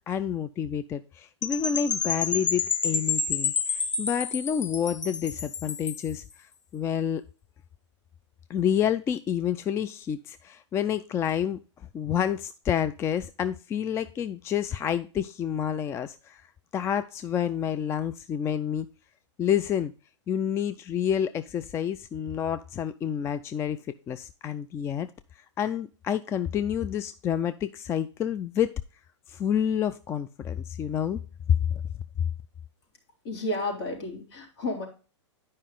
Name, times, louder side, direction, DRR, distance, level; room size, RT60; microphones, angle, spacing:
voice 1, 0.1-7.2 8.5-11.6 11.9-16.4 16.7-18.9 19.4-19.9 20.3-23.8 24.1-25.1 25.6-28.8 29.3-31.2 31.5-31.8, left 9 dB, 15° left, 11 dB, 0.3 m, -28 dB
Percussion / Wind chime, 1.4-6.1, left 5 dB, 85° left, 1.0 m, -29 dB
voice 2, 33.2-34.9, left 1 dB, 55° left, 0 dB, 3.9 m, -31 dB
10.0 x 5.3 x 3.7 m, 0.35 s
hypercardioid pair, 115°, 16 cm